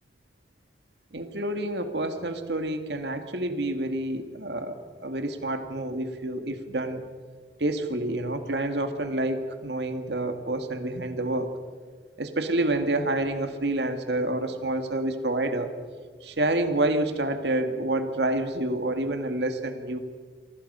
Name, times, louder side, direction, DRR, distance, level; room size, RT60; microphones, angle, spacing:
voice 1, 1.1-7.0 7.6-11.5 12.2-15.7 16.2-20.0, right 2 dB, 70° right, 7 dB, 2.0 m, -28 dB
29.5 x 24.5 x 5.6 m, 1.5 s
head